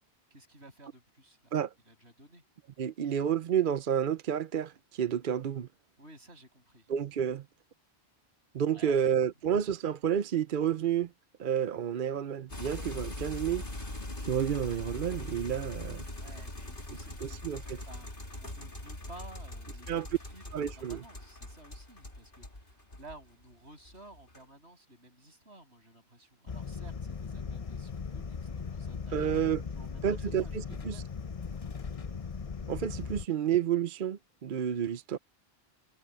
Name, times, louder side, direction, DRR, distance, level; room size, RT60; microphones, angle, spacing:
voice 1, 0.3-1.5 1.9-2.4 6.0-6.9 8.7-9.0 16.1-17.4 17.8-18.1 18.4-31.1, right 2 dB, 85° right, 8.0 m, -54 dB
voice 2, 2.8-5.7 6.9-7.4 8.5-11.1 11.4-13.7 14.2-16.0 17.2-17.8 19.9-20.1 20.5-21.0 29.1-29.6 30.0-31.0 32.7-35.2, right 9 dB, 55° right, 0.8 m, -30 dB
sound 1, 12.5-23.4 23.8-24.4, left 1 dB, 55° left, 3.5 m, -42 dB
sound 2, 26.5-33.2, left 5 dB, 35° left, 0.8 m, -38 dB
omnidirectional pair, 1.1 m